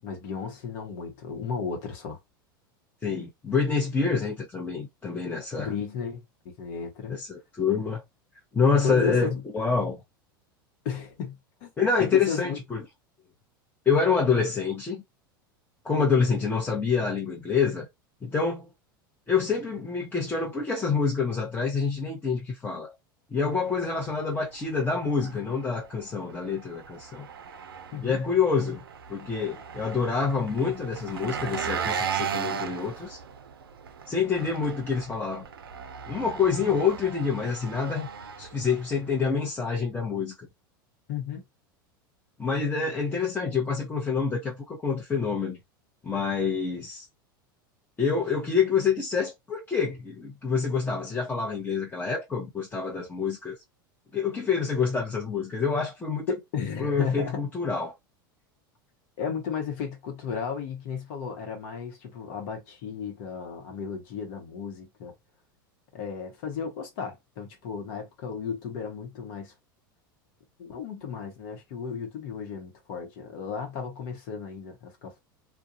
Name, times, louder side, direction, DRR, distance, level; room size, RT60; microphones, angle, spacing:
voice 1, 0.0-2.2 5.6-7.2 8.8-9.4 10.8-11.7 12.0-12.6 27.9-28.2 41.1-41.4 56.3-57.4 59.2-65.1 65.9-69.5 70.6-75.2, left 6 dB, 60° left, 0.9 m, -34 dB
voice 2, 3.0-5.7 7.1-8.0 8.5-10.0 11.8-12.8 13.9-15.0 15.8-17.9 18.2-18.7 19.3-22.9 23.3-27.3 28.0-28.8 29.1-33.2 34.1-35.5 36.1-38.1 38.4-40.5 42.4-45.6 46.0-47.0 48.0-53.6 54.1-56.3 56.8-57.9, left 5 dB, 15° left, 0.8 m, -27 dB
Engine, 23.4-39.2, right 7 dB, 85° right, 0.4 m, -37 dB
2.3 x 2.2 x 2.7 m
hypercardioid pair, 90°, 12 cm